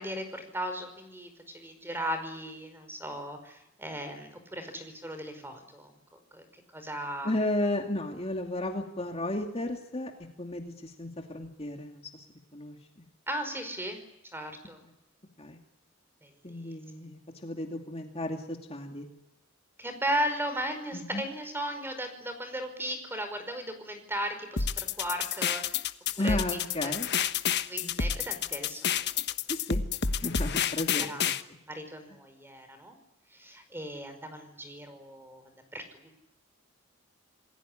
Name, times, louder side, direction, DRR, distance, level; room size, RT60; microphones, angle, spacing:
voice 1, 0.0-7.3 13.3-14.0 14.3-14.8 16.2-16.7 19.8-25.8 26.2-26.4 26.8-26.9 27.7-29.0 31.1-31.2 31.6-33.0 33.3-36.2, right 1 dB, 10° right, 8 dB, 5.1 m, -36 dB
voice 2, 7.2-10.1 10.4-12.3 12.5-13.1 15.4-15.6 16.4-19.1 20.9-21.2 26.2-27.1 27.8-27.9 29.5-29.8 30.1-31.3, left 1 dB, 30° left, 3 dB, 2.5 m, -33 dB
sound 1, 24.6-31.4, left 7 dB, 55° left, 1.3 m, -29 dB
28.5 x 20.5 x 10.0 m, 0.83 s
head